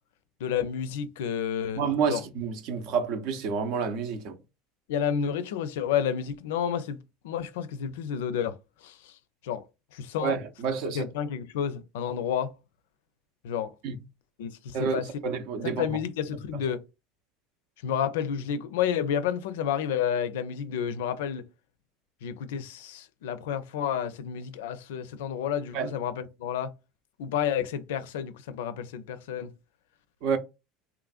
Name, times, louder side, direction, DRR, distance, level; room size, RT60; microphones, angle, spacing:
voice 1, 0.4-2.2 4.9-7.0 7.2-9.2 9.4-9.6 9.9-10.4 10.8-12.5 13.4-13.7 14.4-15.1 15.6-16.8 17.8-21.5 22.2-26.7 27.2-29.5, left 8 dB, 80° left, 0.4 m, -30 dB
voice 2, 1.8-4.4 10.2-11.0 13.8-14.0 14.7-15.9 25.7-25.9 30.2-30.4, right 6 dB, 65° right, 0.6 m, -29 dB
2.9 x 2.5 x 2.3 m
hypercardioid pair, 95°, 0 cm